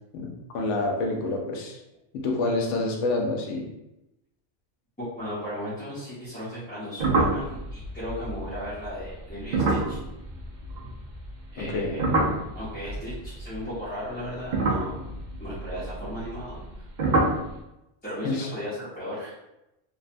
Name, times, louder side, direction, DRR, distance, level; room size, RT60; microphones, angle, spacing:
voice 1, 0.1-1.8 2.1-3.7 11.6-11.9 18.2-18.5, left 2 dB, 85° left, 1 dB, 0.9 m, -28 dB
voice 2, 5.0-10.0 11.5-12.1 12.5-15.0 15.4-16.6 17.1-17.2 18.0-19.3, equal, 10° left, -13 dB, 0.6 m, -36 dB
sound 1, 7.0-11.3 11.6-13.8 14.4-16.7 17.0-17.5, right 2 dB, 60° right, 0.5 m, -27 dB
2.7 x 2.1 x 2.5 m, 0.90 s
omnidirectional pair, 1.2 m